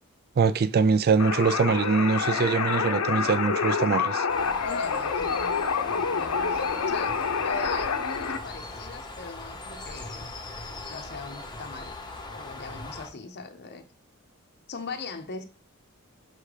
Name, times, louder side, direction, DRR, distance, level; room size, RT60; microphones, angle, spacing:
voice 1, 0.4-4.3, right 5 dB, 45° right, 0.4 m, -23 dB
sound 1, 1.2-8.4, left 5 dB, 85° left, 0.7 m, -27 dB
sound 2, 4.0-8.1, equal, 15° right, 1.0 m, -49 dB
Bird, 4.3-13.1, left 2 dB, 20° left, 0.8 m, -40 dB
voice 2, 4.6-10.3 10.7-11.9 12.3-13.9 14.7-15.4, left 4 dB, 50° left, 0.6 m, -40 dB
5.6 x 3.7 x 4.9 m
head